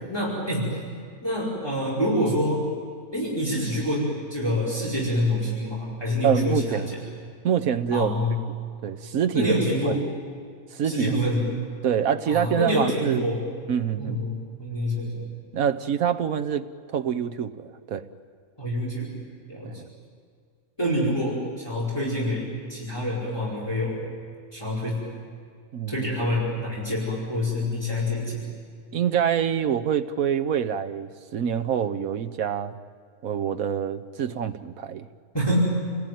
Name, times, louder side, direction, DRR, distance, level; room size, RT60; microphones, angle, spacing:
voice 1, 0.1-0.7 1.2-2.7 3.1-7.0 7.9-8.4 9.3-10.0 10.8-11.5 12.3-13.4 14.0-15.2 18.6-19.1 19.5-19.7 20.8-24.0 24.5-25.0 25.9-28.5 35.3-35.6, left 1 dB, 15° left, -5 dB, 5.1 m, -26 dB
voice 2, 6.2-6.9 7.4-8.1 8.8-9.5 9.8-10.0 10.7-11.1 11.8-13.3 13.7-14.2 15.5-18.1 19.6-19.8 25.7-26.1 28.9-32.7 33.2-35.1, right 8 dB, 70° right, 10 dB, 1.4 m, -26 dB
29.0 x 19.0 x 9.4 m, 2.1 s
omnidirectional pair, 1.6 m